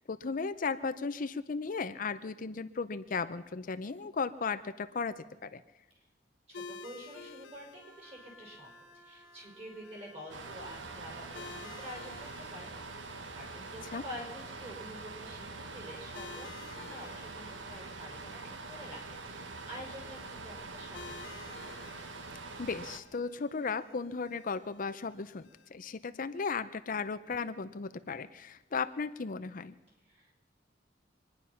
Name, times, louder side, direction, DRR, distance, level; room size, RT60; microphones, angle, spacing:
voice 1, 0.1-5.6 13.9-14.0 22.6-29.7, left 5 dB, 45° left, 11 dB, 0.6 m, -36 dB
sound 1, 6.5-25.7, left 5 dB, 80° left, 1.0 m, -53 dB
voice 2, 6.5-8.7 9.0-12.7 13.3-21.7 30.0-30.3, equal, 35° right, 0 dB, 5.4 m, -48 dB
Wind instrument woodwind instrument, 7.8-12.3, right 1 dB, 15° right, 3.1 m, -58 dB
sound 2, 10.3-23.0, right 3 dB, 80° right, 1.2 m, -44 dB
25.0 x 10.0 x 5.7 m, 1.1 s
head